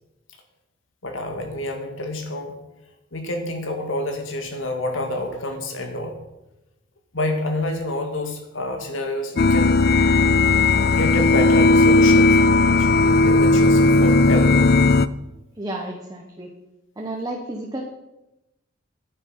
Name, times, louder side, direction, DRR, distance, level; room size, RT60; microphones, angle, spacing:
voice 1, 1.0-2.6 3.1-6.1 7.1-9.8 10.9-12.4 12.7-14.8, left 1 dB, 85° left, 4 dB, 2.1 m, -28 dB
sound 1, 9.4-15.1, left 2 dB, 55° left, 0.5 m, -16 dB
voice 2, 15.5-16.5 17.0-17.8, right 1 dB, 20° right, 0 dB, 1.2 m, -31 dB
10.0 x 9.9 x 5.8 m, 0.96 s
head